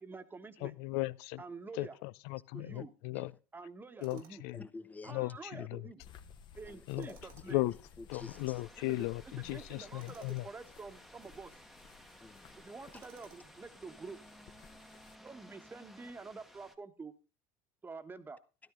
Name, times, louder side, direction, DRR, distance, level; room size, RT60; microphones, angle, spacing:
voice 1, 0.0-0.7 1.4-2.0 2.5-2.9 3.5-4.4 5.0-6.0 6.6-7.6 8.8-9.1 9.4-11.5 12.6-14.2 15.2-17.1 17.8-18.4, right 4 dB, 20° right, 1.2 m, -48 dB
voice 2, 0.6-1.4 1.8-3.3 4.0-4.6 5.1-5.8 6.9-7.1 7.5-7.7 8.1-10.5, left 19 dB, 75° left, 0.5 m, -36 dB
Tools, 4.0-4.6 6.9-7.7 9.9-10.5 12.9-13.6, right 8 dB, 85° right, 2.5 m, -60 dB
voice 3, 4.5-5.7 6.7-7.2 7.5-8.7 10.0-10.1 12.2-13.0 15.3-15.5, left 3 dB, 15° left, 0.9 m, -51 dB
sound 1, 6.0-15.2, left 6 dB, 45° left, 1.3 m, -58 dB
sound 2, 8.1-16.8, equal, ahead, 1.1 m, -57 dB
13.0 x 12.0 x 3.7 m
supercardioid pair, 115°, 11 cm